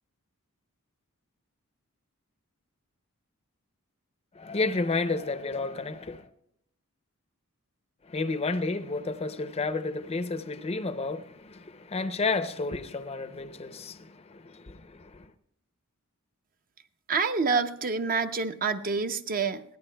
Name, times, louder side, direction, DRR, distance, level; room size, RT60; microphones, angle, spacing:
voice 1, 4.3-6.3 8.0-15.3, left 3 dB, 30° left, 0.6 m, -31 dB
voice 2, 17.1-19.6, right 4 dB, 40° right, 0.6 m, -27 dB
22.5 x 17.0 x 2.2 m
head